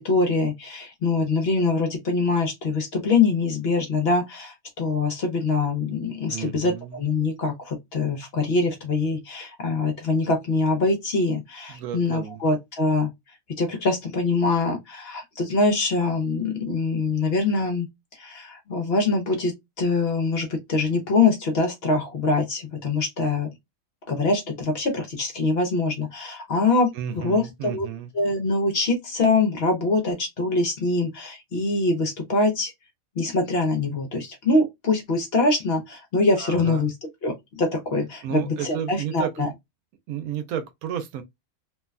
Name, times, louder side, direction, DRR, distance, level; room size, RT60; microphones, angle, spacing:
voice 1, 0.0-13.1 13.6-17.9 18.2-23.5 24.1-27.9 28.1-32.7 33.2-36.9 37.2-39.5, left 3 dB, 55° left, 0.8 m, -24 dB
voice 2, 6.3-7.0 11.7-12.4 26.9-28.1 36.4-36.9 38.2-39.5 40.1-41.2, right 9 dB, 85° right, 1.1 m, -32 dB
3.1 x 2.1 x 2.3 m
omnidirectional pair, 1.5 m